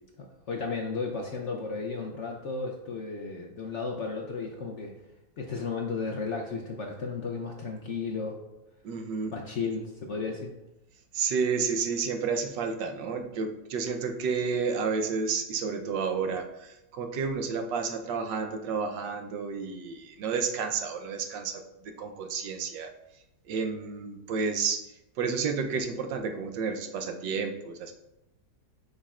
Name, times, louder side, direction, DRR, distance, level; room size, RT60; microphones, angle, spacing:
voice 1, 0.2-4.9 5.4-8.4 9.3-10.5, left 4 dB, 60° left, 1 dB, 0.7 m, -34 dB
voice 2, 8.8-9.4 11.1-21.6 22.0-22.9 23.5-24.9 25.2-27.9, right 5 dB, 80° right, 5 dB, 1.4 m, -31 dB
9.8 x 5.3 x 2.4 m, 0.90 s
omnidirectional pair, 1.9 m